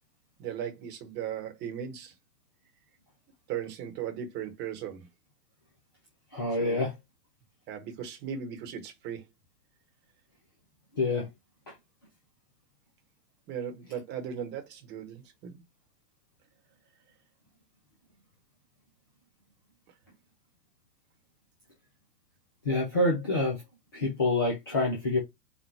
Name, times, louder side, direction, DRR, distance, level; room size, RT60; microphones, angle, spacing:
voice 1, 0.4-2.1 3.5-5.1 6.6-6.9 7.7-9.2 13.5-15.6, right 8 dB, 20° right, 1.0 m, -37 dB
voice 2, 6.3-6.9 11.0-11.3 22.6-23.6 23.9-25.2, left 2 dB, 15° left, 0.3 m, -27 dB
4.9 x 2.2 x 4.3 m
figure-of-eight pair, 105°, 47 cm